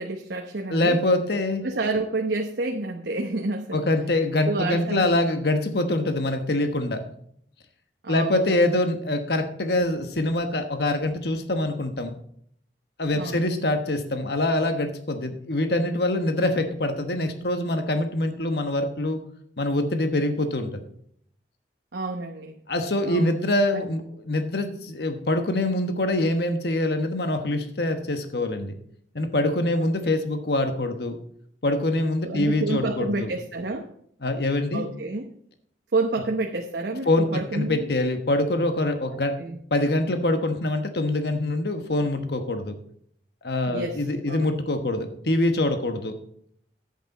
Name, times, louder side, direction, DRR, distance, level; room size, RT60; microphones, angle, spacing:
voice 1, 0.0-1.0 1.6-3.9 4.4-5.1 8.0-8.6 13.1-13.4 21.9-22.6 23.0-23.3 23.7-23.8 29.7-29.9 32.2-33.9 34.7-35.3 35.9-37.9 39.1-39.6 43.7-44.5, right 2 dB, 70° right, 3 dB, 0.9 m, -29 dB
voice 2, 0.7-1.6 3.7-7.0 8.1-12.1 13.0-19.2 19.6-20.8 22.7-28.8 29.1-31.2 31.6-33.3 34.2-34.8 37.1-39.4 39.7-42.7 43.4-46.2, left 1 dB, 65° left, 7 dB, 1.2 m, -24 dB
10.5 x 8.5 x 4.1 m, 0.65 s
head